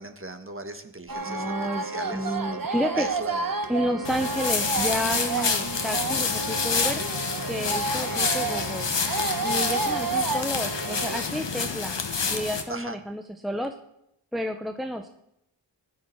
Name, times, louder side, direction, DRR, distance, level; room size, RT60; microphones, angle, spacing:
voice 1, 0.0-3.5 3.8-3.9 5.4-5.7 7.9-8.2 12.7-13.0, right 2 dB, 25° right, 7 dB, 1.6 m, -39 dB
sound 1, 1.1-11.2, right 4 dB, 45° right, 1.2 m, -30 dB
voice 2, 1.3-3.1 3.7-7.0 7.5-8.9 9.4-12.0 12.3-13.7 14.3-15.1, equal, ahead, 5 dB, 0.8 m, -30 dB
sound 2, 4.0-12.6, left 5 dB, 60° left, 1.5 m, -28 dB
16.0 x 11.0 x 4.7 m, 0.82 s
cardioid pair, 55°, 48 cm